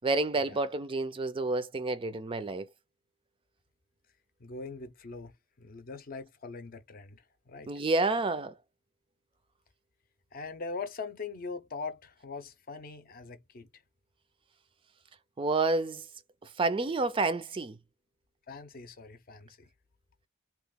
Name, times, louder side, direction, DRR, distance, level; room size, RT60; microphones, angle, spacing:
voice 1, 0.0-2.7 7.7-8.5 15.4-16.0 16.6-17.8, right 3 dB, 25° right, 0.4 m, -29 dB
voice 2, 4.4-5.3 5.6-7.7 10.3-13.7 18.5-19.7, left 4 dB, 50° left, 0.6 m, -42 dB
2.9 x 2.3 x 3.5 m
head